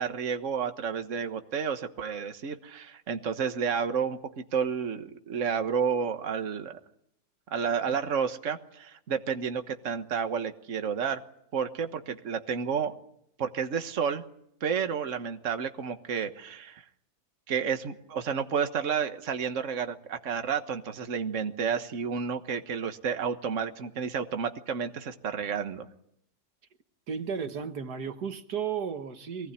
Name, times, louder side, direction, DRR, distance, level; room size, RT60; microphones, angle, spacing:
voice 1, 0.0-6.8 7.5-11.2 11.5-12.9 13.4-14.2 14.6-16.8 17.5-25.9, right 6 dB, 50° right, 1.6 m, -31 dB
voice 2, 27.1-29.5, right 7 dB, 80° right, 1.9 m, -34 dB
24.0 x 19.0 x 9.9 m
omnidirectional pair, 1.7 m